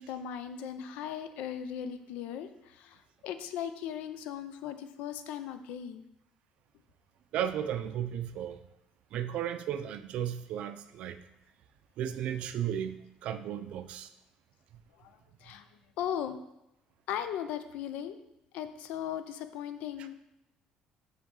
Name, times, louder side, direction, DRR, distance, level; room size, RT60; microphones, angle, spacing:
voice 1, 0.0-3.0 3.2-6.1 15.0-15.1 15.4-15.7 16.0-16.4 17.1-18.2 18.5-20.1, left 9 dB, 75° left, 10 dB, 0.5 m, -37 dB
voice 2, 7.3-8.6 9.1-11.2 12.0-14.1, right 10 dB, 55° right, 10 dB, 0.4 m, -34 dB
7.0 x 3.6 x 3.7 m, 0.88 s
cardioid pair, 160°, 2 cm